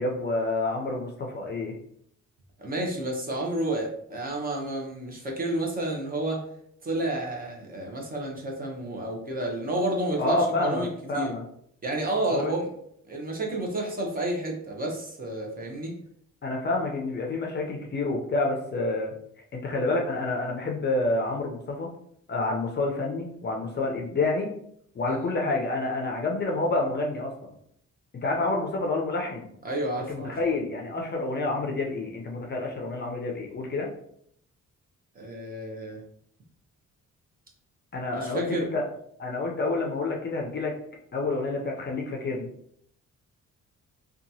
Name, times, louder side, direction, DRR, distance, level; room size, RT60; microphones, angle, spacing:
voice 1, 0.0-1.7 10.2-11.4 12.3-12.5 16.4-19.1 19.5-21.9 22.3-24.5 24.9-27.5 28.2-29.5 30.1-33.9 37.9-38.8 39.2-40.7 41.1-42.5, left 2 dB, 35° left, 0 dB, 0.5 m, -28 dB
voice 2, 2.6-6.4 6.8-11.3 11.8-12.7 13.1-15.9 25.1-25.2 29.6-30.4 35.2-36.0 38.1-38.7, right 1 dB, 30° right, -1 dB, 0.7 m, -30 dB
2.8 x 2.3 x 2.6 m, 0.68 s
cardioid pair, 130°, 30 cm